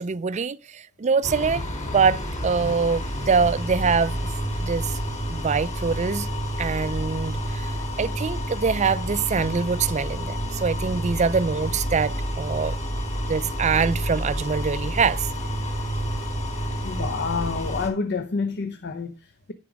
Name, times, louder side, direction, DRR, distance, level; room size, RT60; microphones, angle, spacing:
voice 1, 0.0-1.6 1.9-4.2 4.6-4.9 5.3-6.3 6.6-7.7 8.0-12.8 13.3-15.3, right 5 dB, 30° right, 0.4 m, -24 dB
sound 1, 1.2-17.9, equal, 30° left, 3.2 m, -29 dB
voice 2, 16.8-19.5, left 4 dB, 50° left, 0.7 m, -28 dB
10.5 x 4.9 x 5.0 m
head